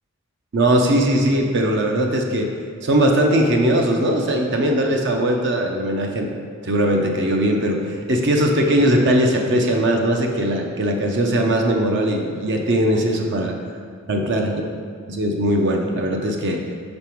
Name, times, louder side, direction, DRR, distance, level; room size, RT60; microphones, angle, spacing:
voice 1, 0.5-2.5 2.8-6.3 6.6-13.5 14.1-14.6 15.1-16.6, right 1 dB, 55° right, 2 dB, 0.6 m, -19 dB
5.3 x 4.9 x 4.5 m, 2.1 s
head